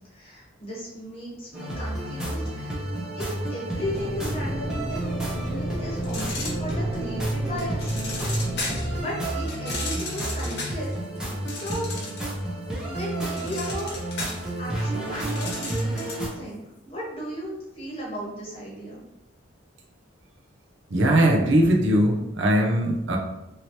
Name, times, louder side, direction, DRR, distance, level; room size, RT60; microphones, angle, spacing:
voice 1, 0.1-2.8 3.2-8.0 8.5-10.9 11.5-12.0 12.8-14.0 14.6-19.0, equal, 30° left, -6 dB, 1.1 m, -35 dB
sound 1, 1.5-16.3, right 1 dB, 5° right, 0.6 m, -31 dB
sound 2, 3.8-9.0, equal, 80° left, 1.1 m, -33 dB
sound 3, 6.0-7.1 7.6-8.9 9.5-12.4 12.7-16.3, left 2 dB, 55° left, 1.0 m, -35 dB
voice 2, 20.9-23.2, right 1 dB, 65° right, 0 dB, 0.6 m, -20 dB
2.8 x 2.8 x 3.0 m, 0.90 s
head